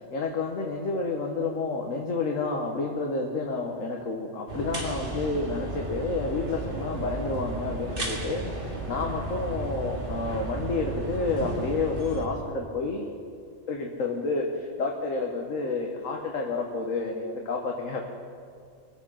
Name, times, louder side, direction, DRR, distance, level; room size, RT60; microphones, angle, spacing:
voice 1, 0.1-13.2 13.7-18.0, left 3 dB, 85° left, 1 dB, 1.6 m, -30 dB
sound 1, 4.5-12.2, right 2 dB, 45° right, 2.4 m, -34 dB
24.0 x 8.0 x 5.6 m, 2.3 s
omnidirectional pair, 1.3 m